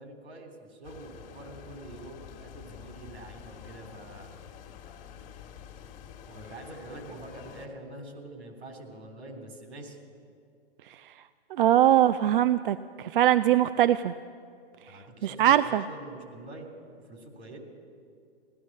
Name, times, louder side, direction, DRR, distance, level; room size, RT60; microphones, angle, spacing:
voice 1, 0.0-4.3 6.3-10.0 14.9-16.7 17.0-17.6, right 2 dB, 75° right, 4 dB, 3.4 m, -45 dB
sound 1, 0.8-7.7, left 8 dB, 35° left, 1.6 m, -48 dB
voice 2, 11.6-14.1 15.2-15.8, right 12 dB, 55° right, 13 dB, 0.4 m, -22 dB
16.0 x 12.0 x 7.3 m, 2.4 s
hypercardioid pair, 135°, 33 cm